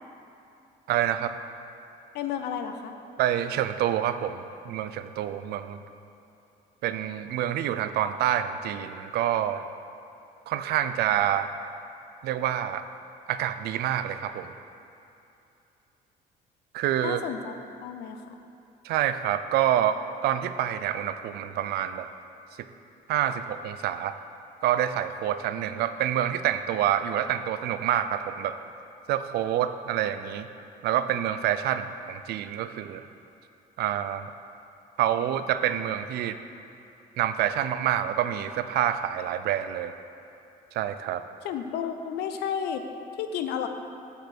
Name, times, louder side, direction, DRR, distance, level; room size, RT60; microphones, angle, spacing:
voice 1, 0.9-1.3 3.2-5.8 6.8-9.6 10.5-11.5 12.2-12.8 13.3-14.5 16.7-17.2 18.8-20.0 20.2-22.1 23.1-24.1 24.6-28.6 29.1-30.5 30.8-33.1 33.8-34.3 35.0-36.4 37.2-40.0 40.7-41.2, right 11 dB, 70° right, 10 dB, 0.4 m, -27 dB
voice 2, 2.1-2.9 17.0-18.4 41.4-42.8 43.2-43.7, left 8 dB, 80° left, 7 dB, 0.6 m, -32 dB
8.0 x 5.2 x 4.4 m, 2.8 s
cardioid pair, 110°, 17 cm